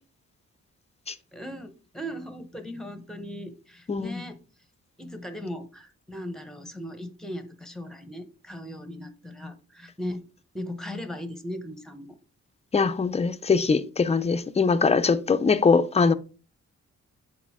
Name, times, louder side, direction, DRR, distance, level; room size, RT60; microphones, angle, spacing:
voice 1, 1.3-4.4 5.0-10.2 10.5-12.1, equal, ahead, 0.8 m, -38 dB
voice 2, 3.9-4.2 12.7-16.1, left 5 dB, 20° left, 0.4 m, -22 dB
8.6 x 4.2 x 3.5 m
wide cardioid pair, 155°, 30 cm